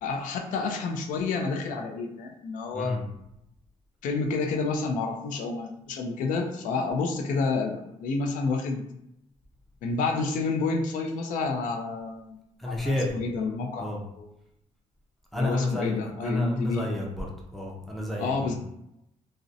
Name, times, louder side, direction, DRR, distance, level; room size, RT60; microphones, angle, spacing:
voice 1, 0.0-3.0 4.0-8.8 9.8-12.4 12.7-14.3 15.3-16.9 18.2-18.6, left 4 dB, 90° left, 3 dB, 0.4 m, -29 dB
voice 2, 2.7-3.0 12.6-13.2 13.8-14.0 15.3-17.3 17.5-18.6, left 2 dB, ahead, -1 dB, 0.4 m, -30 dB
2.5 x 2.0 x 2.5 m, 0.82 s
cardioid pair, 160°, 13 cm